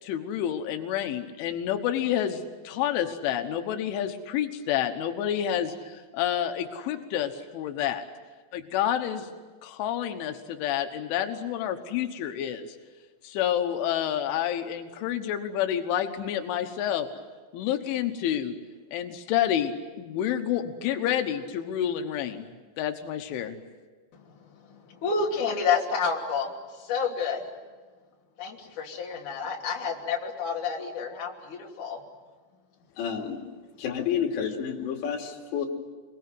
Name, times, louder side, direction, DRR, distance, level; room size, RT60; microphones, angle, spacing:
voice 1, 0.0-8.0 8.5-9.3 9.6-12.8 13.2-17.1 17.5-18.5 18.9-22.4 22.8-23.6, left 10 dB, 90° left, 6 dB, 3.7 m, -29 dB
voice 2, 24.1-27.5 28.4-32.0, left 5 dB, 45° left, -1 dB, 4.2 m, -30 dB
voice 3, 33.0-33.4 33.8-35.7, left 8 dB, 70° left, 2 dB, 4.6 m, -30 dB
27.5 x 22.0 x 9.5 m, 1.3 s
omnidirectional pair, 5.4 m